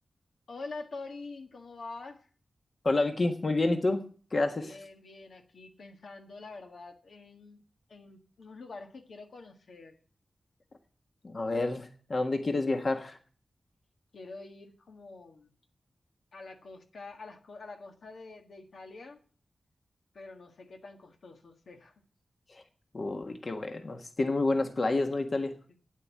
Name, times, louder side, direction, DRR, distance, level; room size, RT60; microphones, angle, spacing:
voice 1, 0.5-2.3 4.6-7.6 7.9-10.0 14.1-15.5 16.3-19.2 20.1-21.9, left 3 dB, 80° left, 3 dB, 1.7 m, -46 dB
voice 2, 2.8-4.0 4.3-4.8 11.2-13.2 22.5-22.6 22.9-25.5, left 2 dB, 50° left, 5 dB, 1.4 m, -29 dB
9.0 x 8.2 x 8.3 m, 0.43 s
cardioid pair, 65°, 0 cm